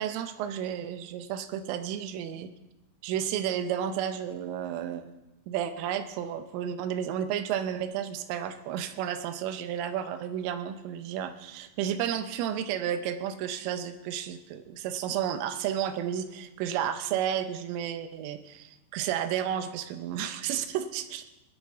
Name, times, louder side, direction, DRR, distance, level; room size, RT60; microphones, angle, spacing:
voice 1, 0.0-2.5 3.0-5.1 5.5-21.3, right 9 dB, 80° right, 9 dB, 3.3 m, -32 dB
20.0 x 10.5 x 3.5 m, 0.94 s
omnidirectional pair, 5.9 m